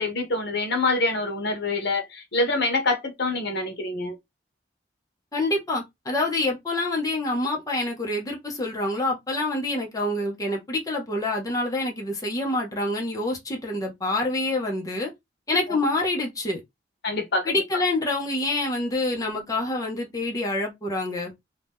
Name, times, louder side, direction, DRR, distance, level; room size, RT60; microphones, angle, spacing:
voice 1, 0.0-4.1 17.0-17.5, left 2 dB, 65° left, 1.0 m, -25 dB
voice 2, 5.3-15.1 15.5-16.6 17.4-21.3, left 2 dB, 20° left, 0.8 m, -26 dB
2.8 x 2.3 x 3.5 m
head